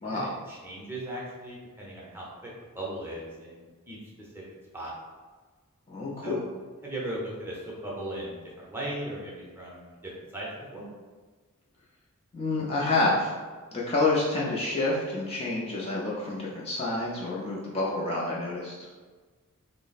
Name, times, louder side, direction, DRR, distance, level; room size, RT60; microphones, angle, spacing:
voice 1, 0.0-2.5 2.7-4.4 4.7-4.9 6.2-6.4 6.8-10.9, right 1 dB, 10° right, -5 dB, 0.7 m, -38 dB
voice 2, 5.9-6.4 12.3-13.3 13.7-18.7, left 2 dB, 25° left, -5 dB, 0.5 m, -28 dB
3.2 x 2.0 x 4.0 m, 1.4 s
head